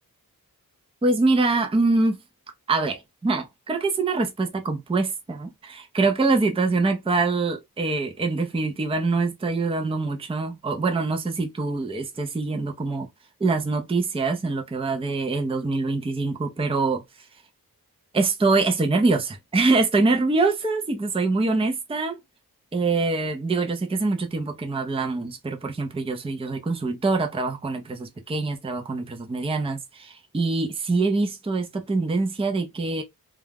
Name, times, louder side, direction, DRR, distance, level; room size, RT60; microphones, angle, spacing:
voice 1, 1.0-2.2 2.7-13.1 13.4-17.0 18.1-22.2 22.7-33.0, right 3 dB, 15° right, 0.5 m, -24 dB
2.3 x 2.1 x 3.3 m
wide cardioid pair, 95°, 37 cm